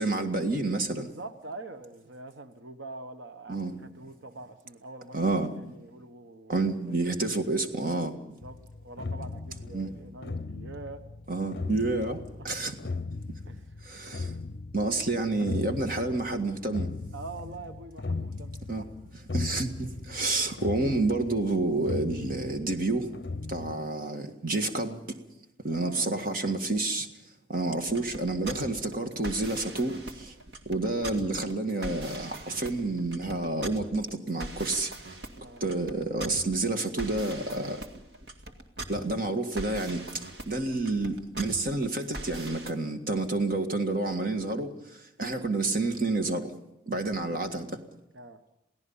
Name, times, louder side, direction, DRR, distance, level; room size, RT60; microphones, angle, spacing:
voice 1, 0.0-1.1 3.5-3.7 5.1-5.5 6.5-8.1 9.7-9.9 11.3-12.2 12.4-12.8 13.8-14.3 14.7-16.9 18.7-18.9 19.3-23.1 23.5-25.2 25.6-27.1 27.5-30.3 30.7-34.9 35.6-37.8 38.9-46.5 46.9-47.8, right 2 dB, 50° right, 1.8 m, -29 dB
voice 2, 1.0-3.6 3.9-6.6 7.2-7.3 8.2-11.0 12.3-12.7 13.5-13.7 17.1-18.9 20.1-20.2 25.7-26.1 29.0-29.1 35.4-35.6 48.1-48.4, right 2 dB, 85° right, 1.1 m, -44 dB
sound 1, 8.4-23.8, left 3 dB, 55° left, 0.6 m, -38 dB
sound 2, 27.8-42.7, right 1 dB, 70° right, 2.1 m, -41 dB
28.0 x 17.0 x 5.6 m
head